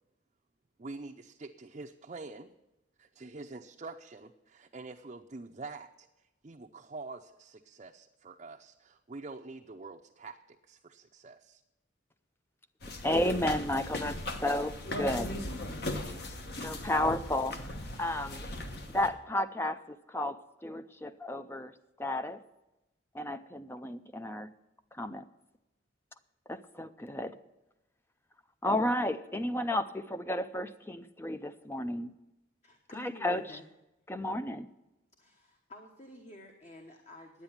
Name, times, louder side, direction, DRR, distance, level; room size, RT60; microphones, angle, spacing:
voice 1, 0.8-2.5 3.0-6.1 6.4-11.6, right 3 dB, 35° right, 1 dB, 0.5 m, -46 dB
sound 1, 12.8-19.1, left 1 dB, 55° left, 1.2 m, -38 dB
voice 2, 13.0-15.4 16.6-17.7 18.0-18.5 18.9-21.7 22.0-22.4 23.1-24.5 25.0-25.2 26.5-27.3 28.6-32.1 33.0-33.4 34.1-34.7, left 1 dB, 10° left, 11 dB, 0.4 m, -32 dB
voice 3, 32.6-33.7 35.2-37.4, left 1 dB, 35° left, 3 dB, 1.1 m, -50 dB
10.5 x 8.8 x 7.2 m, 0.97 s
head